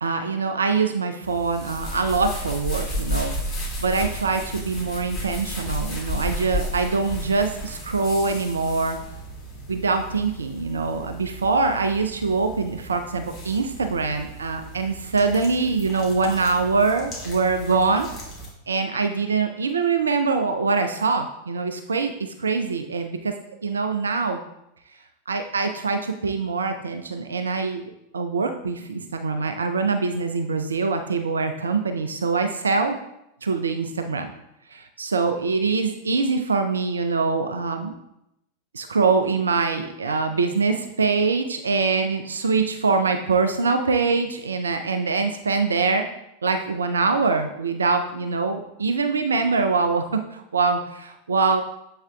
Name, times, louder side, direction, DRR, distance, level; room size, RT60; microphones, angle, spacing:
voice 1, 0.0-3.3 3.8-9.0 9.7-18.1 18.7-23.3 23.6-24.4 25.3-27.8 28.1-33.0 33.4-34.3 34.7-37.9 38.7-46.1 46.4-51.6, right 4 dB, 70° right, 7 dB, 0.4 m, -24 dB
sound 1, 1.2-18.5, equal, 25° left, 2.1 m, -34 dB
7.5 x 5.5 x 2.2 m, 0.85 s
figure-of-eight pair, 90°, 0 cm